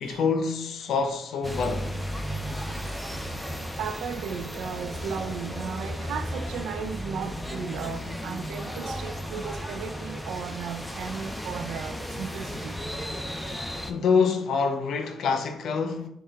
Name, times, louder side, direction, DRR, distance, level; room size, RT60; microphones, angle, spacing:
voice 1, 0.0-1.9 13.9-16.1, left 5 dB, 70° left, 0.6 m, -26 dB
sound 1, 1.4-13.9, equal, ahead, 0.6 m, -34 dB
voice 2, 3.8-12.7, right 7 dB, 80° right, 0.4 m, -35 dB
6.5 x 2.3 x 3.4 m
cardioid pair, 90°, 0 cm